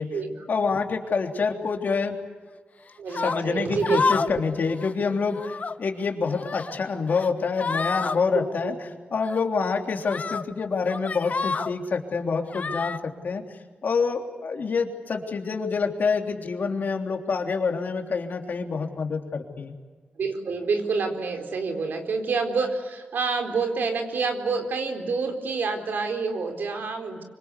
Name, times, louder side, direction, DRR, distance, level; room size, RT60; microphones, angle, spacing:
voice 1, 0.5-2.1 3.2-19.7, left 5 dB, 65° left, 4 dB, 3.3 m, -27 dB
voice 2, 3.0-4.3 4.6-4.7 8.3-8.7 20.2-27.2, right 4 dB, 90° right, 4 dB, 4.2 m, -28 dB
sound 1, 3.1-3.4 3.8-4.4 4.7-4.9 5.3-5.8 6.3-6.8 7.1-7.3 7.6-8.2 9.2-9.4 10.0-10.4 10.9-11.7 12.5-13.0, left 4 dB, 50° left, 1.0 m, -29 dB
25.5 x 24.5 x 8.3 m, 1.4 s
wide cardioid pair, 105°, 3 cm